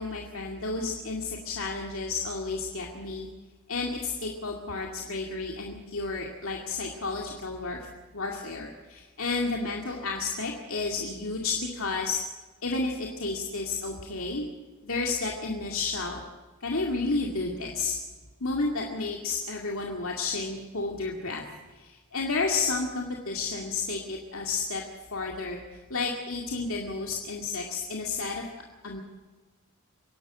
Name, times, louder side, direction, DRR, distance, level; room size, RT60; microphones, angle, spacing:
voice 1, 0.0-3.3 3.7-7.9 8.1-12.2 12.6-14.4 14.8-16.2 16.6-18.0 18.4-21.4 21.7-24.8 25.1-25.6 25.9-28.4 28.8-29.0, left 3 dB, 65° left, 0 dB, 2.3 m, -31 dB
25.5 x 11.5 x 9.1 m, 1.3 s
head